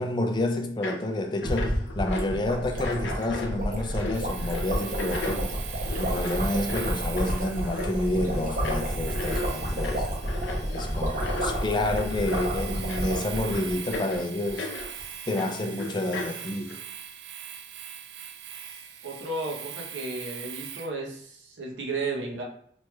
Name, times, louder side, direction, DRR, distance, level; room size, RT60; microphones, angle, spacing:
voice 1, 0.0-10.1 10.7-14.7 15.3-16.8, left 1 dB, 25° left, 0.3 m, -29 dB
sound 1, 0.8-1.0 1.4-2.3 2.6-14.9 15.4-16.8, left 2 dB, 80° left, 0.5 m, -36 dB
sound 2, 1.4-14.2 14.5-14.6 14.8-15.0, equal, 50° right, 0.7 m, -30 dB
Domestic sounds home sounds, 4.1-20.9, right 9 dB, 65° right, 0.3 m, -41 dB
voice 2, 19.0-22.4, right 3 dB, 90° right, 0.7 m, -33 dB
3.1 x 3.1 x 2.2 m
head